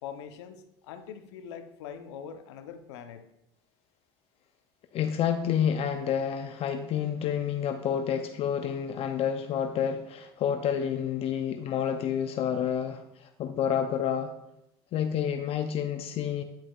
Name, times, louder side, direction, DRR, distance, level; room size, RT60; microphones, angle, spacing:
voice 1, 0.0-3.2, left 8 dB, 85° left, 8 dB, 0.7 m, -43 dB
voice 2, 4.9-14.3 14.9-16.4, left 8 dB, 45° left, 7 dB, 0.5 m, -29 dB
10.0 x 6.0 x 2.3 m, 0.82 s
supercardioid pair, 105°, 14 cm